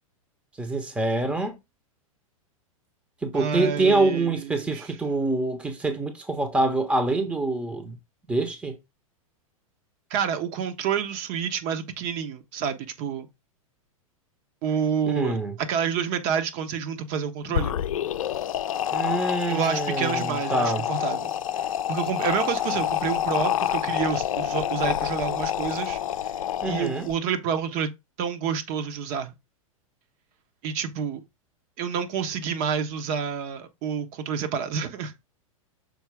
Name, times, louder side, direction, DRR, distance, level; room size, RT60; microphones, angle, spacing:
voice 1, 0.6-1.6 3.2-8.0 8.3-8.8 15.1-15.5 18.9-20.9 26.6-27.1, right 2 dB, 5° right, 0.9 m, -25 dB
voice 2, 3.3-4.9 10.1-13.3 14.6-17.8 19.4-26.0 26.6-27.9 28.2-29.3 30.6-31.2 31.8-35.1, right 7 dB, 45° right, 1.2 m, -29 dB
sound 1, 17.4-27.1, left 10 dB, 70° left, 0.5 m, -28 dB
6.5 x 4.4 x 3.5 m
hypercardioid pair, 100°, 18 cm